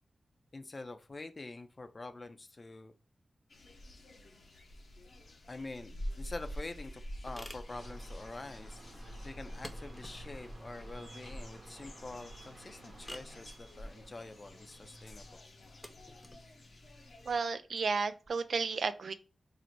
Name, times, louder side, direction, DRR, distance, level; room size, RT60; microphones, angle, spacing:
voice 1, 0.5-2.9 5.5-15.4, left 2 dB, 40° left, 9 dB, 0.5 m, -46 dB
sound 1, 3.5-17.4, equal, 75° left, 0.8 m, -47 dB
sound 2, 6.0-18.3, left 1 dB, 15° left, 0.8 m, -55 dB
sound 3, 7.7-15.4, right 2 dB, 50° right, 0.8 m, -55 dB
voice 2, 17.3-19.1, right 4 dB, 75° right, 11 dB, 0.3 m, -33 dB
3.9 x 2.0 x 4.5 m, 0.35 s
cardioid pair, 60°, 0 cm